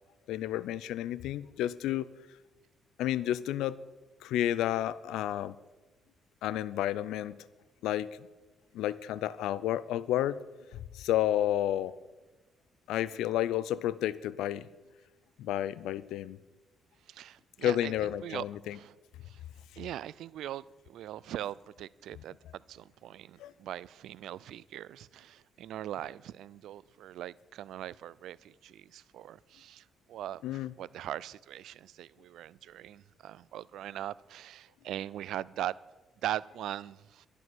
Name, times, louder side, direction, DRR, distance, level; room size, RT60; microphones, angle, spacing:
voice 1, 0.3-2.1 3.0-3.8 4.2-5.5 6.4-7.4 7.8-8.1 8.7-10.4 10.9-11.9 12.9-14.6 15.4-16.4 17.6-18.8 23.4-23.5 30.4-30.7, left 12 dB, 90° left, 0.5 m, -31 dB
voice 2, 17.1-18.4 18.7-18.9 19.3-19.4 19.8-35.8 36.2-37.3, right 12 dB, 80° right, 0.4 m, -41 dB
12.0 x 11.0 x 6.2 m
cardioid pair, 90°, 0 cm